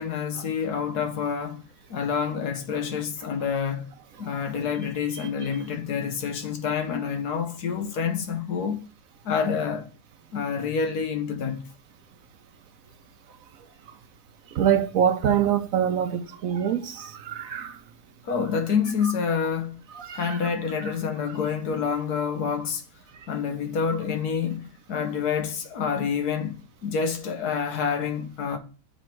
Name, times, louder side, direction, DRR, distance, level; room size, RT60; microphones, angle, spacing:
voice 1, 0.0-1.6 1.9-8.8 9.2-9.9 10.3-11.7 18.2-19.8 20.1-22.8 23.3-28.6, left 6 dB, 75° left, 1.5 m, -28 dB
voice 2, 14.5-17.8 19.9-20.4, right 9 dB, 65° right, 1.1 m, -24 dB
7.9 x 3.4 x 4.4 m
omnidirectional pair, 1.7 m